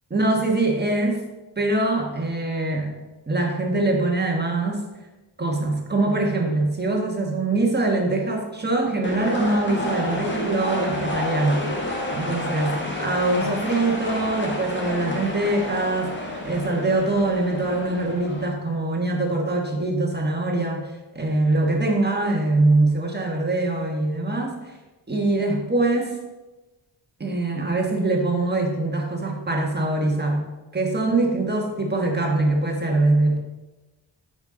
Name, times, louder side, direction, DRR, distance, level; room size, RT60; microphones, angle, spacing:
voice 1, 0.1-1.2 1.6-3.0 3.3-4.9 5.4-11.7 12.1-12.7 13.0-16.1 16.4-20.9 21.1-24.6 25.1-26.2 27.2-30.5 30.7-33.4, right 2 dB, 25° right, 1 dB, 1.3 m, -23 dB
sound 1, 9.0-18.4, left 1 dB, 25° left, 1.3 m, -30 dB
12.0 x 5.4 x 3.8 m, 1.1 s
wide cardioid pair, 175°, 43 cm